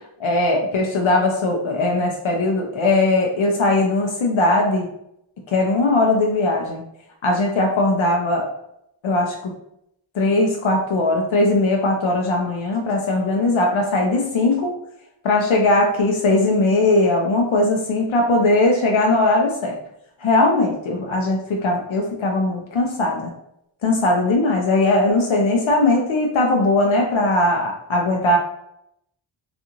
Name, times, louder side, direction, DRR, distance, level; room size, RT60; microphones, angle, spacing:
voice 1, 0.2-4.9 5.5-6.8 7.2-8.5 9.0-9.3 10.1-14.7 15.2-19.8 20.2-23.3 23.8-28.4, left 2 dB, 70° left, 1 dB, 0.6 m, -19 dB
2.4 x 2.4 x 2.9 m, 0.77 s
wide cardioid pair, 105°, 50 cm